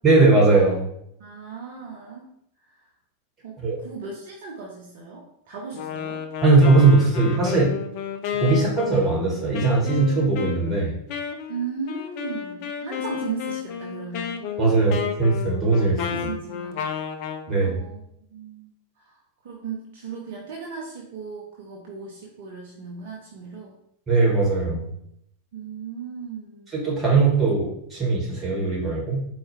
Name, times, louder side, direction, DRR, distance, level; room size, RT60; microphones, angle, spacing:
voice 1, 0.0-0.8 3.6-3.8 6.4-7.7 8.4-11.0 14.6-16.3 17.5-17.8 24.1-24.9 26.7-29.2, right 3 dB, 20° right, -3 dB, 1.5 m, -19 dB
voice 2, 1.2-2.3 2.6-2.8 3.4-3.6 3.8-6.2 11.5-14.8 15.9-16.8 17.5-18.0 18.3-18.7 19.0-23.8 25.5-26.7, right 5 dB, 50° right, -1 dB, 0.6 m, -36 dB
Wind instrument woodwind instrument, 5.7-17.5, left 8 dB, 45° left, 0.4 m, -32 dB
4.3 x 2.3 x 3.2 m, 0.75 s
figure-of-eight pair, 90°, 0 cm